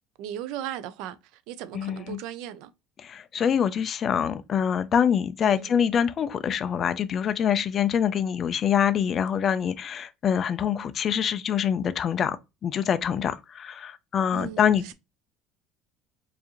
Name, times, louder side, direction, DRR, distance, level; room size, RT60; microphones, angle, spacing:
voice 1, 0.2-2.7 5.4-5.8 14.3-14.9, right 11 dB, 75° right, 0.4 m, -37 dB
voice 2, 1.7-2.2 3.0-12.4 12.6-14.9, left 8 dB, 35° left, 0.3 m, -25 dB
4.7 x 2.5 x 2.8 m
cardioid pair, 145°, 0 cm